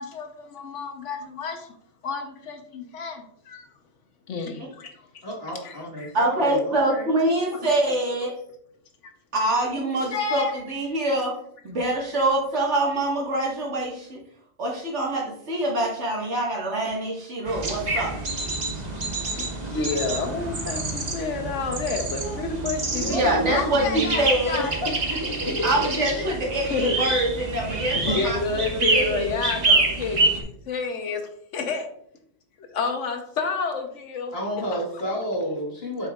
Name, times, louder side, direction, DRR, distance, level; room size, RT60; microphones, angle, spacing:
voice 1, 0.0-1.6 2.0-3.7 4.3-4.9 5.6-6.1 7.5-7.6 9.7-9.8 10.1-10.5 19.3-24.7 26.7-27.0 27.9-31.2 31.5-31.9 32.7-34.3 34.7-34.8, left 4 dB, 75° left, 5 dB, 1.3 m, -30 dB
voice 2, 5.2-7.1 22.2-24.2 24.6-26.3 34.3-36.1, equal, 55° left, -3 dB, 2.0 m, -31 dB
voice 3, 6.1-8.3 9.3-11.3 11.6-14.2 14.6-18.1 23.1-24.6 25.6-28.4 28.9-29.3, right 1 dB, 65° right, -2 dB, 2.0 m, -25 dB
sound 1, 17.5-30.4, right 3 dB, 35° right, 1.1 m, -27 dB
7.7 x 5.5 x 2.4 m, 0.68 s
omnidirectional pair, 1.3 m